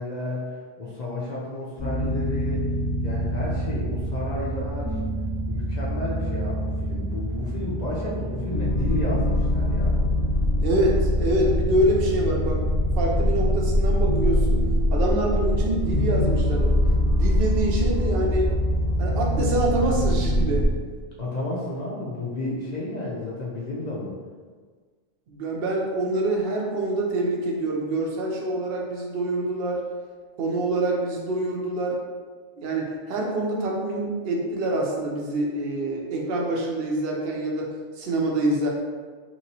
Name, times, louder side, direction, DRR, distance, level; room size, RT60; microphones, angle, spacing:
voice 1, 0.0-2.6 3.0-5.0 5.5-10.0 21.2-24.1, left 1 dB, 65° left, -6 dB, 0.4 m, -32 dB
sound 1, 1.8-20.7, equal, 40° left, 1.0 m, -24 dB
voice 2, 10.6-12.6 13.0-16.8 17.1-18.5 19.0-20.7 25.3-29.8 30.4-32.0 32.6-38.7, right 1 dB, 60° right, -1 dB, 0.7 m, -26 dB
2.9 x 2.9 x 2.7 m, 1.5 s
omnidirectional pair, 1.4 m